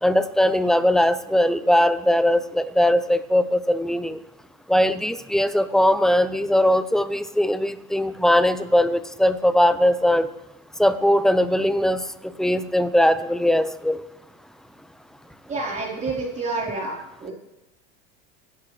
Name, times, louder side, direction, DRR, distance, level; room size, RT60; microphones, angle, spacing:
voice 1, 0.0-4.2 4.7-10.3 10.8-12.0 12.4-14.0, left 1 dB, ahead, 12 dB, 0.8 m, -20 dB
voice 2, 15.5-17.0 17.2-17.3, right 3 dB, 25° right, -3 dB, 4.2 m, -28 dB
25.0 x 11.5 x 3.4 m, 0.95 s
supercardioid pair, 110°, 29 cm